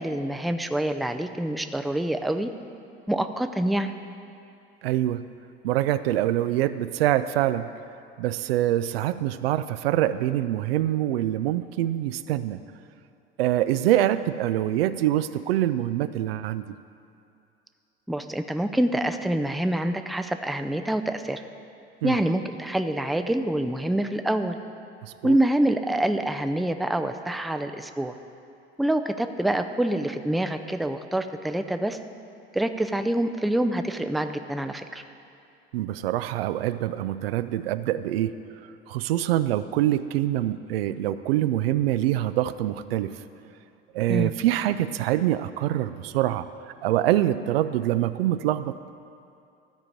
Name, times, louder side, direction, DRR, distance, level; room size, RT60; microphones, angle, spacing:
voice 1, 0.0-2.5 3.1-3.9 18.1-21.4 22.0-24.6 25.2-28.1 28.8-32.0 32.5-35.0 44.1-44.3, right 1 dB, ahead, 8 dB, 0.5 m, -26 dB
voice 2, 4.8-5.2 5.6-7.7 8.2-12.6 13.4-16.8 22.0-22.2 25.0-25.4 35.7-38.4 38.9-43.1 43.9-46.5 46.8-48.8, right 13 dB, 75° right, 13 dB, 0.4 m, -25 dB
12.5 x 5.1 x 7.3 m, 2.6 s
hypercardioid pair, 70°, 30 cm